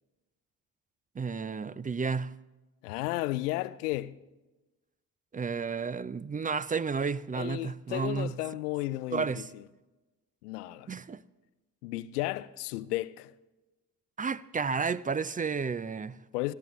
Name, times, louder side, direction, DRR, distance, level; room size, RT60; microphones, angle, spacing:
voice 1, 1.2-2.3 5.3-8.4 9.1-9.5 10.9-11.2 14.2-16.2, right 5 dB, 20° right, 0.5 m, -32 dB
voice 2, 2.8-4.2 7.3-9.6 10.4-10.9 11.8-13.3 16.3-16.5, left 17 dB, 85° left, 0.5 m, -33 dB
25.5 x 16.0 x 3.1 m
hypercardioid pair, 45°, 45 cm